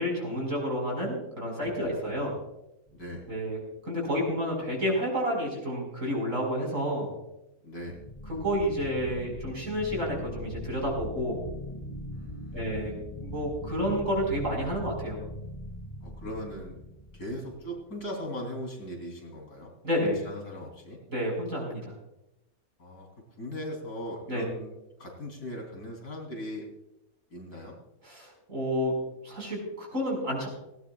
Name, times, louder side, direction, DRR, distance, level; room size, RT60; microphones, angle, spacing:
voice 1, 0.0-2.3 3.3-3.6 3.8-7.1 8.3-11.4 12.5-12.9 13.2-15.2 19.8-20.2 21.1-21.9 24.3-24.5 28.0-28.9 29.2-30.5, equal, 60° right, -2 dB, 5.6 m, -30 dB
voice 2, 1.7-2.4 2.9-3.2 7.6-8.0 12.1-12.8 16.0-16.8 17.1-19.7 20.2-21.0 22.8-23.1 23.4-24.7 25.0-26.7 27.3-27.8, equal, 90° left, 1 dB, 4.0 m, -39 dB
sound 1, 2.9-3.5 7.8-18.0, equal, 20° left, 1.6 m, -41 dB
18.0 x 17.5 x 2.4 m, 0.91 s
omnidirectional pair, 1.6 m